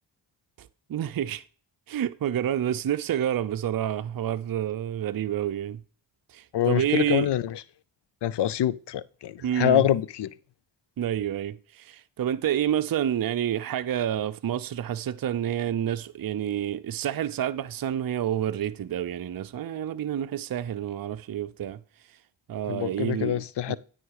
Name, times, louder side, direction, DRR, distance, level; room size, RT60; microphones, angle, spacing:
voice 1, 0.6-1.4 1.9-5.8 6.3-7.3 9.4-9.8 11.0-21.8 22.5-23.8, right 10 dB, 45° right, 0.6 m, -29 dB
voice 2, 6.5-7.6 8.2-10.3 22.7-23.8, left 11 dB, 60° left, 0.6 m, -25 dB
9.5 x 3.9 x 4.8 m
cardioid pair, 50°, 47 cm